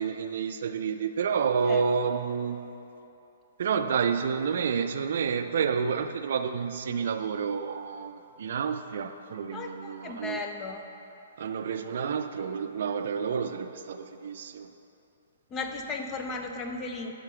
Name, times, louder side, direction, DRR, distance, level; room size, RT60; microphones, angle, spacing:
voice 1, 0.0-2.7 3.6-10.4 11.4-14.7, right 6 dB, 65° right, 0.4 m, -29 dB
voice 2, 9.5-10.8 15.5-17.1, left 3 dB, 25° left, 0.6 m, -35 dB
7.4 x 5.1 x 4.9 m
hypercardioid pair, 135°, 0 cm